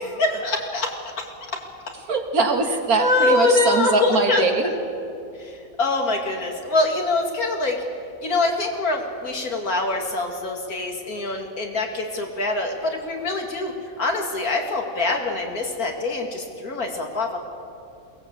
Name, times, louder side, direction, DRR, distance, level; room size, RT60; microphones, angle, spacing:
voice 1, 0.0-0.9 2.9-4.4 5.4-7.8 8.2-17.4, left 3 dB, 75° left, 2 dB, 2.9 m, -24 dB
voice 2, 2.1-4.7, right 4 dB, 80° right, 4 dB, 2.3 m, -22 dB
22.5 x 18.0 x 8.0 m, 2.6 s
omnidirectional pair, 1.6 m